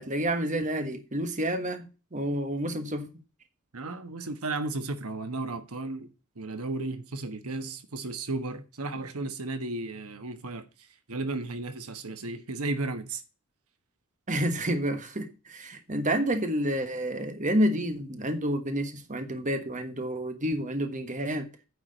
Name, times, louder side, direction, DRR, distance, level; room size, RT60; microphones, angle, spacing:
voice 1, 0.0-1.9 2.1-3.1 14.3-21.5, right 1 dB, 35° right, 1.4 m, -29 dB
voice 2, 3.7-13.2, right 2 dB, 80° right, 1.3 m, -34 dB
9.5 x 4.7 x 6.7 m
head